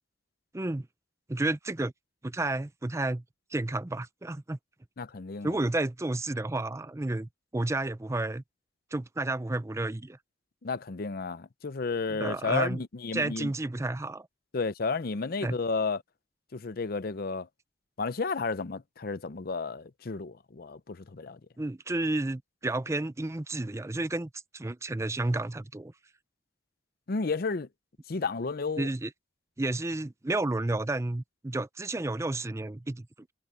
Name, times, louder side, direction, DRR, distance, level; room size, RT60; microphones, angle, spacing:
voice 1, 0.5-0.9 1.3-1.9 2.2-3.2 3.5-4.6 5.4-8.4 8.9-10.2 12.2-12.8 13.1-14.3 15.4-15.6 21.6-25.9 28.8-29.1 29.6-33.1, right 2 dB, 15° right, 0.5 m, -31 dB
voice 2, 5.0-5.6 10.6-13.5 14.5-16.0 16.5-17.5 18.0-21.4 27.1-27.7 28.1-28.9, left 4 dB, 55° left, 0.6 m, -32 dB
head